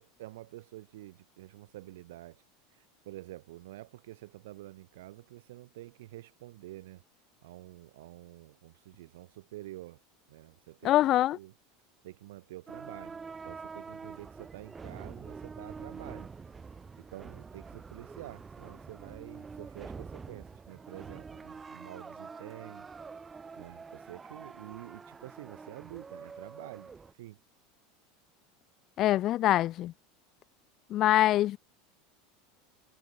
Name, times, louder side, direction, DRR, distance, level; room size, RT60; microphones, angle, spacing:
voice 1, 0.0-2.4 2.7-7.0 7.4-10.0 10.3-11.5 12.0-16.3 17.0-22.9 23.6-26.9 27.2-27.4, right 16 dB, 70° right, 4.1 m, -48 dB
voice 2, 10.8-11.4 29.0-29.9 30.9-31.6, left 14 dB, 45° left, 0.3 m, -24 dB
sound 1, 12.7-27.1, right 5 dB, 20° right, 3.1 m, -46 dB
hypercardioid pair, 80°, 0 cm